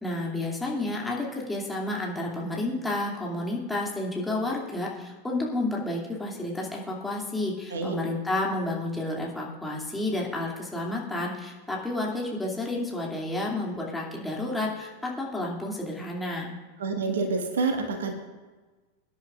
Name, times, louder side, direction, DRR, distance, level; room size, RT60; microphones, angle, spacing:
voice 1, 0.0-16.5, left 2 dB, 5° left, -3 dB, 2.6 m, -31 dB
voice 2, 16.8-18.1, right 4 dB, 65° right, 5 dB, 1.5 m, -27 dB
23.5 x 10.5 x 2.5 m, 1.3 s
figure-of-eight pair, 90°, 0 cm